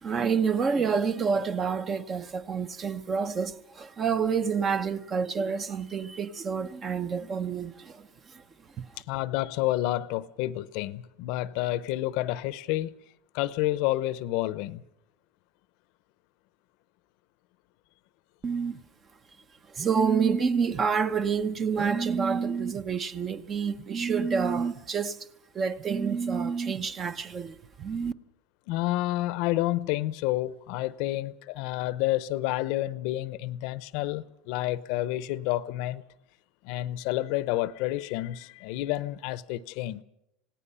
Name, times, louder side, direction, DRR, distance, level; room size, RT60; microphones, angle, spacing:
voice 1, 0.0-8.4 8.8-9.0 18.4-18.8 19.7-25.3 25.5-28.1, right 6 dB, 25° right, 0.8 m, -28 dB
voice 2, 9.1-12.9 13.3-14.8 28.7-36.0 36.6-40.0, left 16 dB, 60° left, 0.8 m, -29 dB
27.5 x 18.0 x 5.6 m
supercardioid pair, 155°, 0 cm